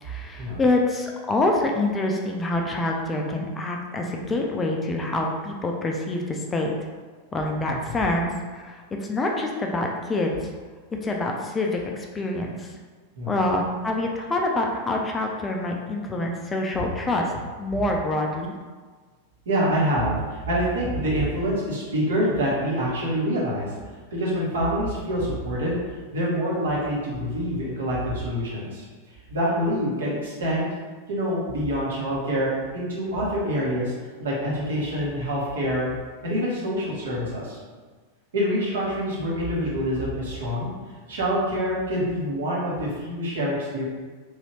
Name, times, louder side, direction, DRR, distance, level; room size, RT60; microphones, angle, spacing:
voice 1, 0.0-6.7 7.3-10.5 11.0-12.8 13.3-17.3 17.6-18.6, left 2 dB, 15° left, 1 dB, 0.4 m, -26 dB
voice 2, 19.5-23.7 24.1-25.8 26.1-28.8 29.3-30.7 31.1-33.9 34.2-35.9 36.2-37.6 38.3-40.7 41.1-43.8, equal, 65° right, -6 dB, 1.0 m, -26 dB
3.1 x 2.7 x 2.9 m, 1.5 s
figure-of-eight pair, 90°, 0 cm